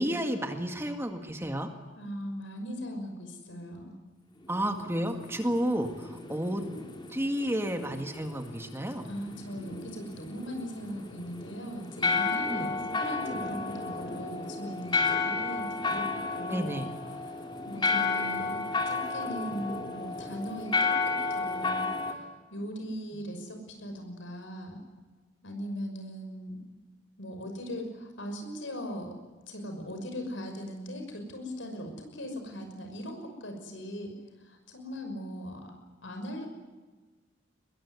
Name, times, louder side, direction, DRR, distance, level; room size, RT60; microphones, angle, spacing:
voice 1, 0.0-1.7 4.5-6.6 7.1-9.1 12.5-12.7 16.5-16.9, equal, 15° right, 5 dB, 1.9 m, -31 dB
voice 2, 1.9-4.0 9.0-16.8 17.6-18.6 18.9-21.9 22.1-22.2 22.5-24.8 25.4-26.6 27.2-29.1 29.5-34.1 34.4-35.7 36.0-36.5, equal, 80° left, 5 dB, 6.0 m, -39 dB
sound 1, 4.4-22.1, left 4 dB, 25° left, 3.1 m, -32 dB
23.5 x 21.5 x 9.7 m, 1.2 s
head